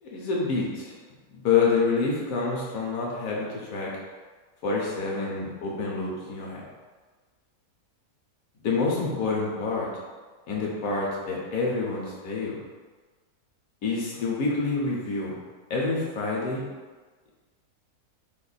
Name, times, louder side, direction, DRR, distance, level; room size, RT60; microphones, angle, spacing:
voice 1, 0.0-0.9 1.3-3.9 4.6-6.6 8.6-9.9 10.5-12.6 13.8-15.4 15.7-16.7, left 4 dB, 70° left, -3 dB, 1.2 m, -27 dB
2.9 x 2.6 x 4.0 m, 1.4 s
omnidirectional pair, 1.6 m